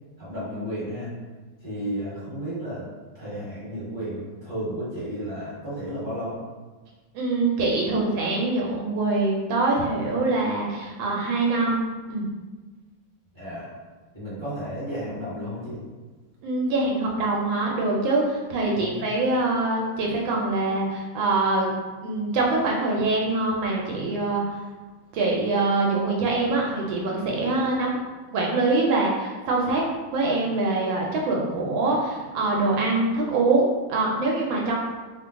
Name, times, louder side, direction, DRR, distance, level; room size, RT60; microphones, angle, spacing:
voice 1, 0.2-1.1 1.6-2.9 3.1-6.4 13.3-13.7 14.1-15.8 18.7-19.0, equal, 30° right, -10 dB, 1.2 m, -33 dB
voice 2, 7.1-11.8 12.1-12.3 16.4-21.7 22.0-24.6 25.1-28.0 28.3-29.8 30.1-34.7, right 2 dB, 80° right, -2 dB, 1.3 m, -24 dB
3.1 x 2.2 x 3.5 m, 1.3 s
omnidirectional pair, 2.1 m